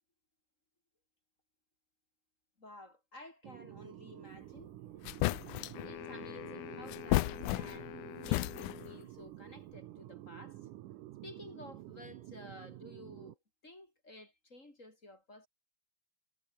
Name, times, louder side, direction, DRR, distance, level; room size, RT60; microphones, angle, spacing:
voice 1, 2.6-4.7 5.8-10.7 11.2-13.4 13.6-15.5, left 1 dB, 25° left, 4.7 m, -53 dB
sound 1, 3.4-13.3, right 15 dB, 90° right, 2.5 m, -50 dB
sound 2, 4.6-4.7 5.0-5.9 6.9-7.9 8.2-9.0, left 18 dB, 85° left, 2.2 m, -33 dB
sound 3, 5.7-9.1, left 14 dB, 70° left, 1.6 m, -47 dB
omnidirectional pair, 3.6 m